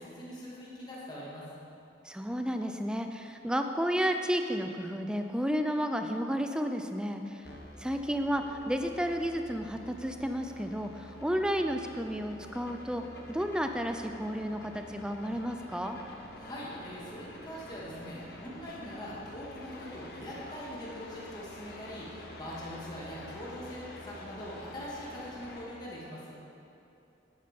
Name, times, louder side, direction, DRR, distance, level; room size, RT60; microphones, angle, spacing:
voice 1, 0.0-1.5 16.4-26.3, equal, 25° left, -6 dB, 2.4 m, -42 dB
voice 2, 2.0-7.5 7.8-13.0 13.3-16.0, equal, 5° right, 6 dB, 0.5 m, -32 dB
sound 1, 7.4-25.6, left 1 dB, 60° left, 1.4 m, -48 dB
10.5 x 9.0 x 5.3 m, 2.8 s
head